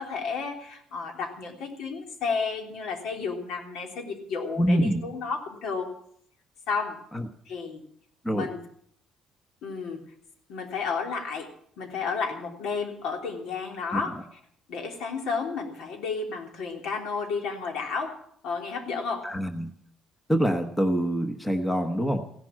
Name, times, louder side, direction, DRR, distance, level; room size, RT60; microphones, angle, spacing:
voice 1, 0.0-5.9 6.7-7.0 7.5-7.8 8.3-8.6 9.6-10.1 10.5-11.5 11.8-14.4 14.7-18.2 18.4-19.3, left 5 dB, 70° left, 2 dB, 3.3 m, -32 dB
voice 2, 4.6-5.1 7.1-7.2 8.2-8.5 19.2-19.7 20.3-22.3, equal, 5° left, 6 dB, 1.0 m, -25 dB
16.5 x 11.0 x 7.4 m, 0.65 s
cardioid pair, 170°, 0 cm